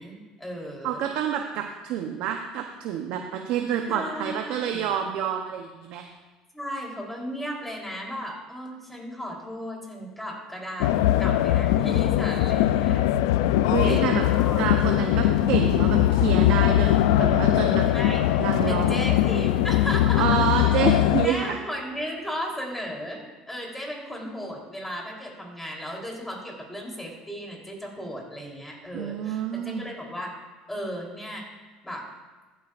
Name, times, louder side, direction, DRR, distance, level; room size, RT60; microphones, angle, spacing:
voice 1, 0.0-1.0 3.9-4.9 6.5-10.9 11.2-13.0 13.3-13.5 13.9-14.0 14.4-14.7 17.9-18.3 18.6-20.3 21.2-30.4 30.7-31.4 31.8-32.1, equal, 10° left, -1 dB, 3.5 m, -35 dB
voice 2, 0.8-6.1 13.7-14.2 14.6-16.9 17.2-17.8 18.4-19.1 20.2-21.6 28.9-29.9, right 9 dB, 75° right, 3 dB, 0.8 m, -28 dB
sound 1, 10.8-21.3, left 13 dB, 90° left, 0.4 m, -21 dB
14.5 x 9.5 x 2.5 m, 1.3 s
supercardioid pair, 95°, 2 cm